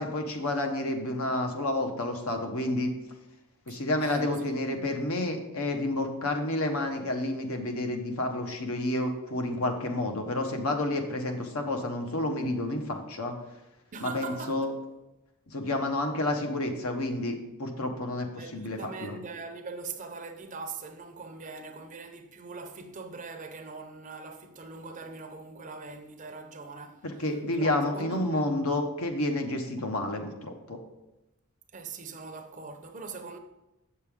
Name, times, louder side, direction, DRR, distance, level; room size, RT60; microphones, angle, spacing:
voice 1, 0.0-2.9 3.7-13.3 14.0-14.7 15.5-19.1 27.0-30.8, left 1 dB, 70° left, 1.1 m, -30 dB
voice 2, 3.7-4.6 13.9-14.7 18.2-27.1 27.5-28.5 29.8-29.9 31.7-33.4, right 4 dB, 35° right, 0.6 m, -41 dB
7.7 x 6.7 x 3.6 m
head